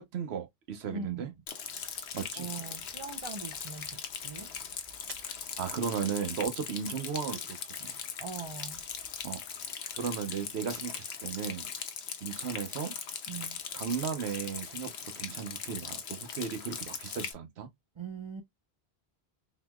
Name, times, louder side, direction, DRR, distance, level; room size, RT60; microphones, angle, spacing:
voice 1, 0.0-1.3 2.1-2.5 5.2-8.0 9.2-9.4 10.0-11.6 12.2-12.9 13.7-17.7, right 7 dB, 85° right, 1.0 m, -36 dB
voice 2, 0.9-1.4 2.4-4.5 8.2-8.8 13.3-13.6 18.0-18.4, right 5 dB, 45° right, 0.4 m, -41 dB
Rain, 1.5-17.3, left 7 dB, 80° left, 1.0 m, -40 dB
3.8 x 3.0 x 2.2 m
omnidirectional pair, 1.1 m